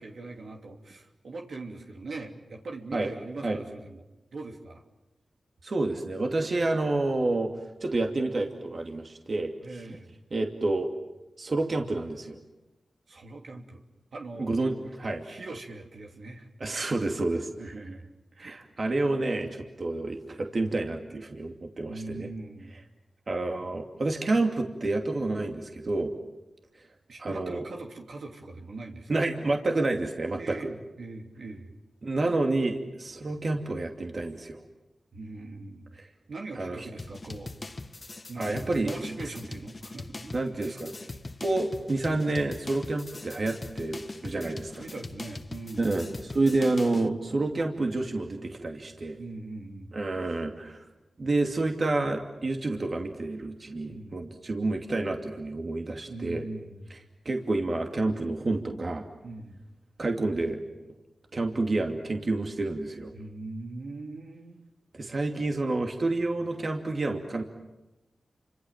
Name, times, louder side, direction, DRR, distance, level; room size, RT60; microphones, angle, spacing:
voice 1, 0.0-4.0 4.3-4.8 9.6-10.1 13.1-13.8 14.1-14.5 15.2-16.5 17.6-18.6 21.9-22.8 27.1-29.2 30.4-31.7 35.1-35.9 36.3-37.7 38.3-40.8 44.4-45.9 49.2-50.0 53.9-54.2 56.1-57.1 59.2-59.6 63.1-64.6, right 2 dB, 75° right, 1 dB, 3.0 m, -41 dB
voice 2, 5.6-7.5 7.8-9.8 10.3-10.9 11.4-12.4 14.4-15.2 16.6-17.5 18.4-22.3 23.3-26.1 27.2-27.6 29.1-30.7 32.0-34.6 36.0-36.1 36.6-36.9 38.4-38.9 40.3-41.0 41.4-44.7 45.8-49.2 49.9-50.8 51.2-56.5 57.2-59.1 60.0-60.6 61.3-63.1 64.9-67.4, right 2 dB, 55° right, 3 dB, 2.7 m, -29 dB
sound 1, 37.0-47.1, left 2 dB, 45° left, 1.6 m, -41 dB
29.0 x 25.5 x 7.5 m, 1.0 s
cardioid pair, 40°, 0 cm